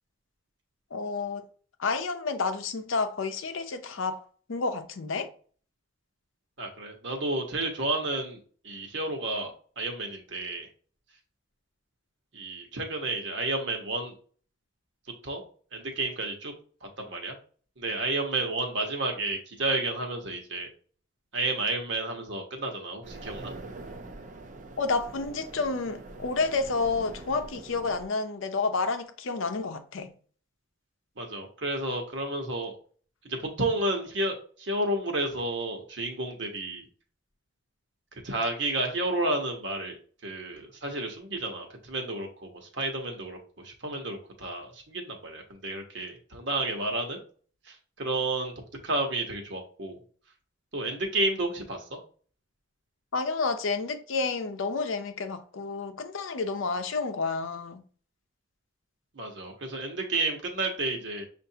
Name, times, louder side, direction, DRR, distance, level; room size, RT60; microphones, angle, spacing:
voice 1, 0.9-1.5 1.8-4.2 4.5-5.3 24.8-30.1 53.1-57.8, left 4 dB, 70° left, 0.6 m, -30 dB
voice 2, 6.6-8.4 8.6-10.7 12.3-14.1 15.2-15.4 15.7-16.5 16.8-17.3 17.8-20.7 21.3-23.5 31.2-32.8 33.3-36.9 38.2-40.0 40.2-47.2 47.6-48.5 48.8-50.0 50.7-52.0 59.1-61.2, right 2 dB, 60° right, 1.1 m, -31 dB
sound 1, 23.0-28.1, right 2 dB, 35° right, 0.4 m, -44 dB
6.6 x 2.5 x 2.8 m
head